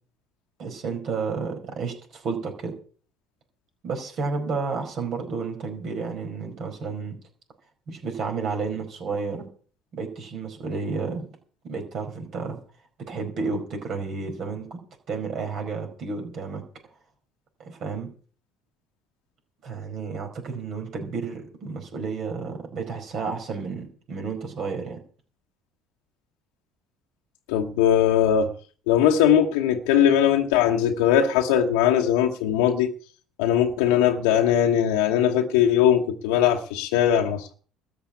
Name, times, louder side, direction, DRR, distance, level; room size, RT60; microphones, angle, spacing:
voice 1, 0.6-2.7 3.8-7.2 7.9-9.5 9.9-11.3 11.6-12.6 13.1-14.8 15.1-16.6 17.6-18.1 19.6-25.0, right 4 dB, 55° right, 4.8 m, -31 dB
voice 2, 27.5-28.5 28.9-32.9 33.4-37.5, left 9 dB, 75° left, 1.1 m, -20 dB
13.5 x 7.5 x 8.6 m
hypercardioid pair, 60°, 0 cm